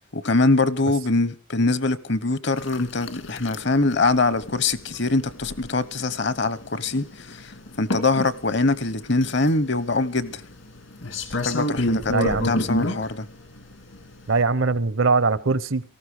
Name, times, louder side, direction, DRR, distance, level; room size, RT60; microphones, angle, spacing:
voice 1, 0.1-10.4 11.3-13.3, left 3 dB, 55° left, 1.0 m, -23 dB
sound 1, 2.6-14.4, left 1 dB, 70° left, 2.3 m, -30 dB
voice 2, 12.1-12.5 14.3-15.8, right 4 dB, 75° right, 0.9 m, -21 dB
18.0 x 15.0 x 5.0 m
head